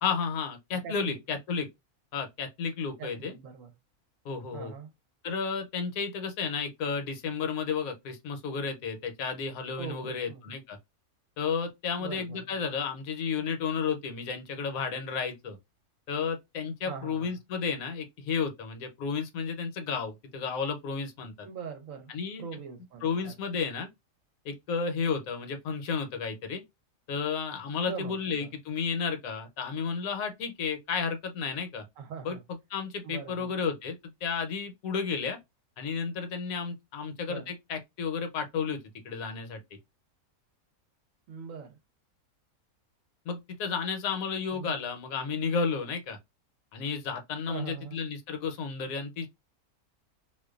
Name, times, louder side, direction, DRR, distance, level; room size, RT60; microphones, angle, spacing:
voice 1, 0.0-1.7 2.1-3.3 4.2-4.7 5.2-10.8 11.4-15.6 16.1-21.5 22.1-22.4 23.0-23.9 24.4-26.6 27.1-31.8 32.2-32.4 32.7-35.4 35.8-39.6 43.3-46.2 46.7-49.3, left 5 dB, 75° left, 1.0 m, -32 dB
voice 2, 0.8-1.2 3.0-3.7 4.5-4.9 9.8-10.4 12.0-12.6 16.8-17.4 21.4-22.1 22.4-23.3 27.9-28.5 32.0-32.4 33.0-33.5 37.3-37.5 41.3-41.8 44.5-44.7 47.5-48.0, right 6 dB, 70° right, 0.9 m, -42 dB
2.4 x 2.2 x 2.3 m
omnidirectional pair, 1.6 m